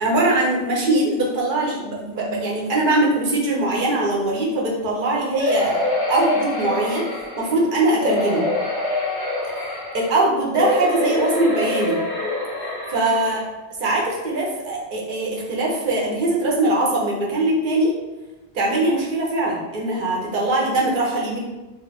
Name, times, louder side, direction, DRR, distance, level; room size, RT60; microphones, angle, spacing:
voice 1, 0.0-5.8 6.1-7.0 7.4-8.4 10.1-12.0 12.9-13.4 13.8-17.9 18.5-21.4, right 2 dB, 55° right, -3 dB, 0.7 m, -21 dB
sound 1, 5.4-7.5 8.0-10.2 10.5-13.4 14.0-14.1 14.4-14.5, left 2 dB, 40° left, 0.3 m, -25 dB
2.3 x 2.0 x 3.2 m, 1.1 s
omnidirectional pair, 1.1 m